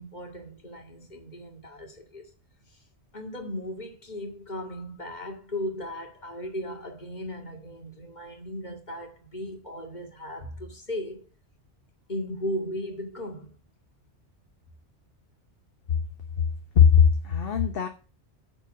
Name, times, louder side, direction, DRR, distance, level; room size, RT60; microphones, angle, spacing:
voice 1, 0.0-2.3 2.7-2.8 3.1-11.3 12.1-13.6, equal, 40° left, 2.3 m, -36 dB
voice 2, 16.7-17.9, left 7 dB, 55° left, 1.2 m, -19 dB
9.2 x 4.5 x 7.3 m
omnidirectional pair, 1.2 m